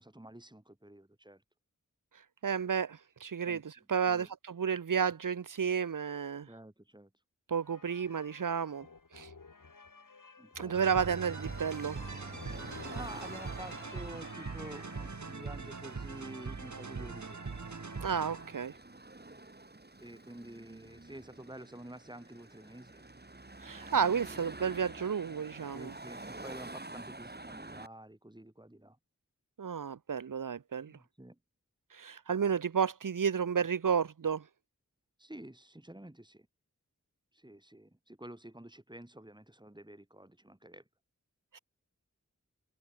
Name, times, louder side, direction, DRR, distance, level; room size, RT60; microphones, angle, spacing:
voice 1, 0.0-1.4 3.5-3.6 4.1-4.3 6.5-7.1 10.4-10.7 12.9-17.5 20.0-23.0 25.7-29.0 30.9-31.4 35.2-36.5 37.3-40.8, right 1 dB, 15° right, 4.1 m, -49 dB
voice 2, 2.4-6.5 7.5-8.8 9.1-9.3 10.6-12.0 18.0-18.7 23.6-25.9 29.6-30.9 31.9-34.4 41.5-41.6, right 7 dB, 80° right, 0.9 m, -32 dB
sound 1, 7.6-15.5, left 4 dB, 80° left, 5.5 m, -53 dB
sound 2, 10.7-18.7, right 4 dB, 65° right, 2.2 m, -42 dB
Car passing by / Traffic noise roadway noise / Engine, 11.0-27.9, right 2 dB, 30° right, 3.7 m, -49 dB
wide cardioid pair, 65°, 32 cm